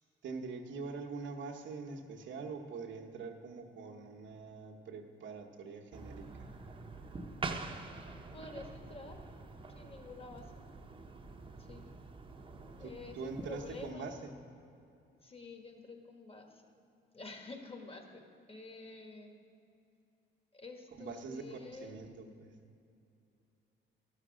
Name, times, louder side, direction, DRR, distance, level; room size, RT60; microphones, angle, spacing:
voice 1, 0.2-6.3 12.8-14.3 21.0-22.5, right 4 dB, 70° right, 3 dB, 1.1 m, -44 dB
sound 1, 5.9-13.9, right 3 dB, 25° right, 0.8 m, -46 dB
voice 2, 8.3-9.2 9.7-10.5 11.6-11.8 12.8-14.1 15.2-16.7 17.1-18.2 18.5-19.4 20.5-21.9, left 3 dB, 30° left, 4 dB, 1.4 m, -49 dB
12.5 x 6.7 x 6.2 m, 2.7 s
cardioid pair, 90°, 20 cm